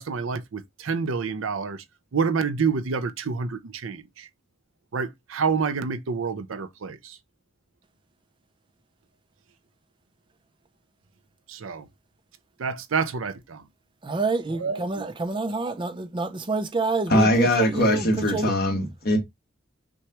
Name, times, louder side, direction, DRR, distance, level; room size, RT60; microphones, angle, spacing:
voice 1, 0.0-1.8 2.1-4.3 4.9-7.2 11.5-11.9 12.6-13.7 14.5-15.1, right 5 dB, 90° right, 0.6 m, -28 dB
voice 2, 14.0-18.5, right 3 dB, 25° right, 0.5 m, -28 dB
voice 3, 17.1-19.2, left 1 dB, 50° left, 1.5 m, -21 dB
6.0 x 2.3 x 2.9 m
head